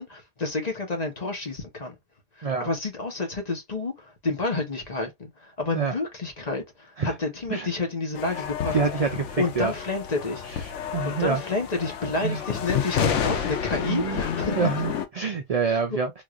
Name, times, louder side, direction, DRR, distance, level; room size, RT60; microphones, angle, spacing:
voice 1, 0.0-1.9 2.4-8.8 9.4-10.7 11.0-14.6 15.7-16.0, left 3 dB, 35° left, 1.1 m, -30 dB
sound 1, 8.2-15.1, left 8 dB, 90° left, 1.0 m, -30 dB
voice 2, 8.7-9.7 10.4-11.4 12.2-12.4 13.3-13.5 13.9-14.2 14.6-16.1, right 5 dB, 50° right, 0.4 m, -27 dB
3.6 x 3.0 x 2.4 m
omnidirectional pair, 1.2 m